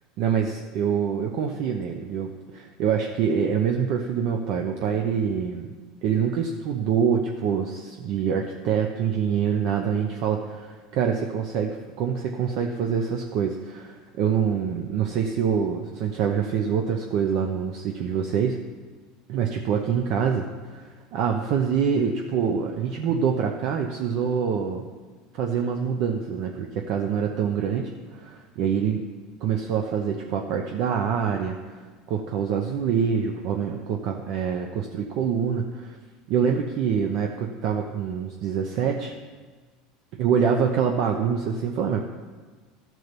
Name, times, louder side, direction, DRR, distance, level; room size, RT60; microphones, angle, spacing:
voice 1, 0.2-5.8 6.0-18.6 19.3-24.9 25.3-29.0 29.4-36.0 36.3-39.1 40.1-42.0, right 7 dB, 60° right, 3 dB, 0.8 m, -25 dB
13.0 x 4.6 x 6.7 m, 1.4 s
supercardioid pair, 110°, 0 cm